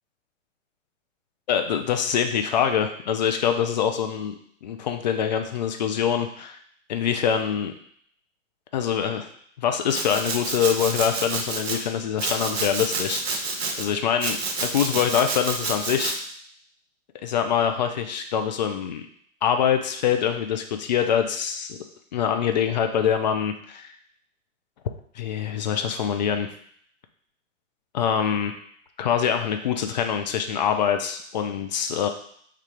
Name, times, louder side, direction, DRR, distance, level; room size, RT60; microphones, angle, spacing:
voice 1, 1.5-6.6 6.9-7.7 8.7-9.3 9.6-13.4 13.8-16.2 17.2-19.0 19.4-21.8 22.1-23.9 25.2-26.5 27.9-28.5 29.0-32.1, left 8 dB, 35° left, 6 dB, 0.4 m, -24 dB
Domestic sounds home sounds, 9.9-11.8 12.2-13.8 14.2-16.2, right 3 dB, 55° right, 0.8 m, -29 dB
3.5 x 2.4 x 4.3 m, 0.64 s
figure-of-eight pair, 110°, 38 cm